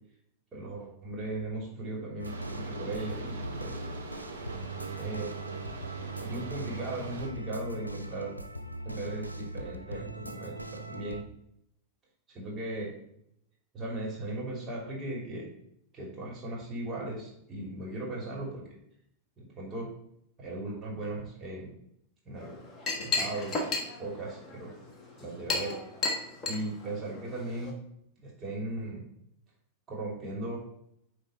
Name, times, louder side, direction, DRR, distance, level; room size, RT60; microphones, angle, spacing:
voice 1, 0.5-3.9 5.0-5.4 6.2-8.4 8.8-11.2 12.3-12.9 13.7-15.5 15.9-18.6 19.4-19.9 20.4-21.7 22.2-22.5 22.9-23.6 24.0-24.7 25.2-25.8 26.5-27.7 28.2-29.0 29.9-30.6, right 2 dB, 25° right, -3 dB, 2.7 m, -37 dB
sound 1, 2.2-11.2, right 2 dB, 90° left, 0.5 m, -40 dB
sound 2, 2.2-7.3, right 2 dB, 70° right, 1.3 m, -43 dB
Chink clink, 22.4-27.7, left 3 dB, 25° left, 1.4 m, -34 dB
9.2 x 3.4 x 4.1 m, 0.75 s
figure-of-eight pair, 90°, 0 cm